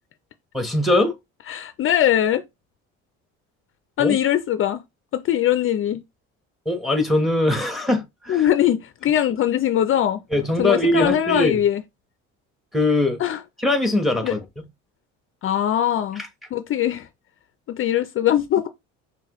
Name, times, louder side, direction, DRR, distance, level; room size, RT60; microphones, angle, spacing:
voice 1, 0.5-1.2 4.0-4.2 6.6-8.5 10.3-11.6 12.7-13.2 13.6-14.4 16.2-16.3, left 1 dB, ahead, 1.1 m, -21 dB
voice 2, 1.5-2.4 4.0-4.8 5.1-6.0 8.3-10.2 10.6-11.8 13.2-13.4 14.2-14.3 15.4-16.2 16.5-17.1 17.7-18.7, left 11 dB, 45° left, 0.5 m, -21 dB
5.8 x 2.3 x 3.0 m
cardioid pair, 100°, 31 cm